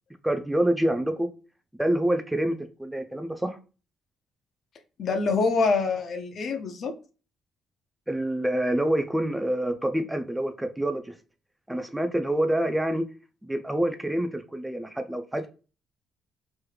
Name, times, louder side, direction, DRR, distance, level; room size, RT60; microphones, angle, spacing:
voice 1, 0.2-1.3 1.8-3.6 8.1-11.1 11.7-13.0 13.5-15.5, right 1 dB, 5° right, 7 dB, 0.4 m, -26 dB
voice 2, 5.0-6.9, left 4 dB, 60° left, 6 dB, 0.6 m, -25 dB
3.3 x 3.1 x 2.3 m, 0.34 s
cardioid pair, 90°, 0 cm